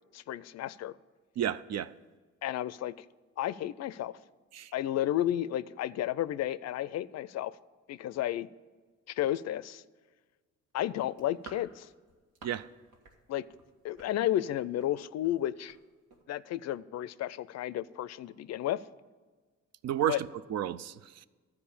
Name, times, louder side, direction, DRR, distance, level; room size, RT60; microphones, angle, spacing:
voice 1, 0.1-0.9 2.4-3.1 3.4-4.2 4.7-7.6 7.9-8.5 9.1-9.8 10.7-11.9 13.3-13.5 13.8-15.8 16.3-18.8 20.1-20.2, left 12 dB, 60° left, 0.4 m, -32 dB
voice 2, 1.4-1.9 4.5-4.7 12.4-12.7 19.8-21.3, right 11 dB, 60° right, 0.5 m, -32 dB
sound 1, 11.0-12.7 12.9-13.2 13.5-14.9 15.2-15.4 15.7-15.8 16.1-16.2, right 3 dB, 85° right, 1.7 m, -52 dB
12.0 x 4.8 x 8.5 m
cardioid pair, 90°, 30 cm